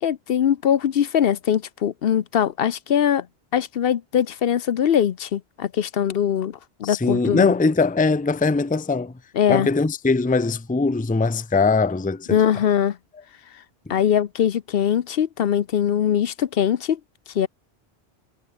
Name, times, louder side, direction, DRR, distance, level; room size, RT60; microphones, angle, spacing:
voice 1, 0.0-3.3 3.5-7.5 9.3-9.7 12.3-13.0 13.9-17.0 17.3-17.5, left 9 dB, 65° left, 0.9 m, -21 dB
voice 2, 6.8-9.1 9.5-12.4 13.9-14.0, left 3 dB, 10° left, 0.5 m, -21 dB
omnidirectional pair, 1.1 m